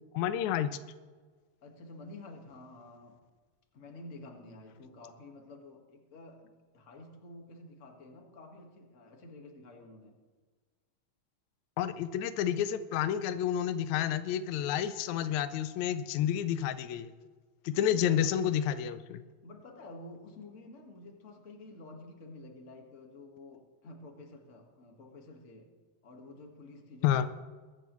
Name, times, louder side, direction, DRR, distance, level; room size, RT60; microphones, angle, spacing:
voice 1, 0.1-0.7 11.8-17.1 17.6-19.2 27.0-27.3, left 10 dB, 80° left, 11 dB, 1.7 m, -30 dB
voice 2, 1.6-3.2 3.7-10.2 17.7-18.6 19.4-25.7 26.0-27.3, left 2 dB, 40° left, 2 dB, 1.0 m, -50 dB
22.0 x 11.0 x 3.1 m, 1.4 s
omnidirectional pair, 3.9 m